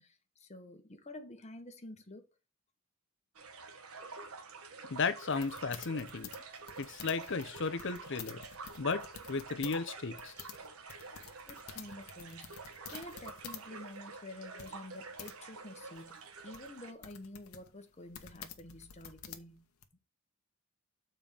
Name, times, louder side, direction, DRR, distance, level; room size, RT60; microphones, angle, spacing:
voice 1, 0.0-2.3 11.5-19.7, left 1 dB, 30° left, 1.1 m, -49 dB
sound 1, 3.3-16.9, right 4 dB, 75° right, 1.1 m, -48 dB
voice 2, 4.9-6.3 6.8-8.4 8.8-10.5, left 4 dB, 55° left, 0.7 m, -35 dB
sound 2, 5.3-9.8 10.1-13.7 14.0-14.1 14.6-15.3 16.0-19.9, left 8 dB, 80° left, 1.0 m, -49 dB
7.1 x 4.5 x 5.1 m
head